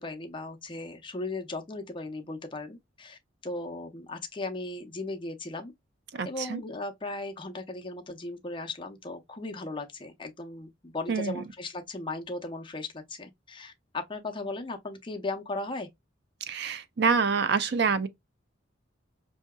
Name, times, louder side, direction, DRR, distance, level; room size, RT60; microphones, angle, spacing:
voice 1, 0.0-5.7 6.2-15.9, left 2 dB, 25° left, 0.6 m, -37 dB
voice 2, 6.1-6.6 11.1-11.4 16.5-18.1, right 5 dB, 55° right, 0.5 m, -26 dB
5.5 x 2.8 x 2.2 m
head